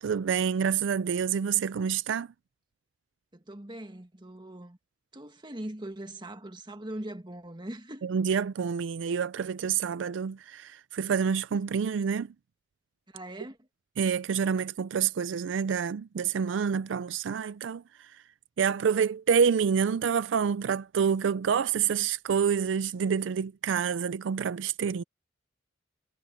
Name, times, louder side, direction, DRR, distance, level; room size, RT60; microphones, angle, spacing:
voice 1, 0.0-2.3 8.0-12.3 14.0-18.1 18.6-25.0, right 7 dB, 75° right, 0.4 m, -27 dB
voice 2, 3.3-4.8 5.1-8.1 13.1-13.6, right 1 dB, 25° right, 1.8 m, -41 dB
head